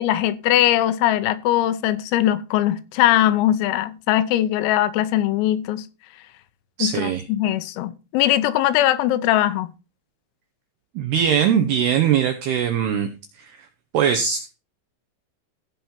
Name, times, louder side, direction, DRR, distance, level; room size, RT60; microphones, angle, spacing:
voice 1, 0.0-5.9 6.8-9.7, left 13 dB, 90° left, 3.6 m, -20 dB
voice 2, 6.8-7.2 11.0-13.1 13.4-13.5 13.9-14.5, right 8 dB, 85° right, 2.3 m, -21 dB
15.5 x 5.7 x 4.3 m
omnidirectional pair, 5.9 m